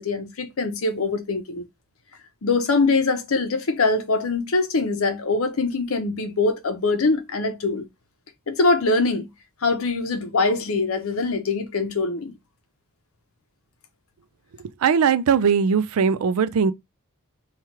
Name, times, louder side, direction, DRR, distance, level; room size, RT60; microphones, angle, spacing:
voice 1, 0.0-1.6 2.4-7.8 8.5-9.3 9.6-12.3, left 3 dB, 65° left, 0.7 m, -23 dB
voice 2, 14.8-16.7, right 6 dB, 80° right, 0.4 m, -19 dB
3.1 x 2.4 x 4.3 m
head